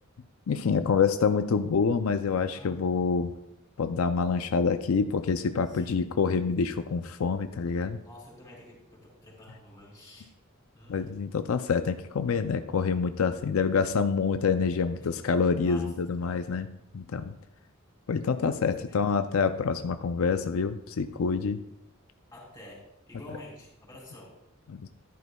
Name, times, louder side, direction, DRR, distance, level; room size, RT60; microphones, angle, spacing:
voice 1, 0.5-3.3 3.8-8.0 10.9-16.7 16.9-17.3 18.1-21.6 24.7-24.8, left 5 dB, 85° left, 9 dB, 0.5 m, -27 dB
voice 2, 2.5-2.9 5.6-6.0 7.7-10.3 10.7-11.2 15.0-15.2 15.6-15.9 18.9-19.0 22.3-24.3, left 1 dB, 15° left, -4 dB, 4.0 m, -49 dB
13.5 x 11.0 x 2.3 m, 0.86 s
head